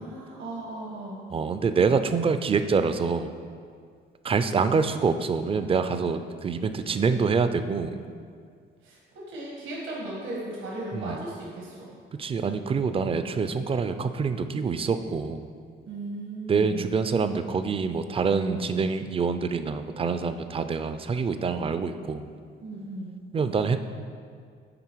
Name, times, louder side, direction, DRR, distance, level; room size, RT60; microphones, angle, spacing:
voice 1, 0.0-1.3 8.8-12.0 15.9-16.9 22.6-23.2, right 2 dB, 80° right, -4 dB, 1.5 m, -37 dB
voice 2, 1.3-3.3 4.2-8.0 10.9-11.2 12.2-15.4 16.5-22.3 23.3-23.8, right 5 dB, 30° right, 10 dB, 0.4 m, -26 dB
9.0 x 3.3 x 4.6 m, 2.1 s
cardioid pair, 90°, 20 cm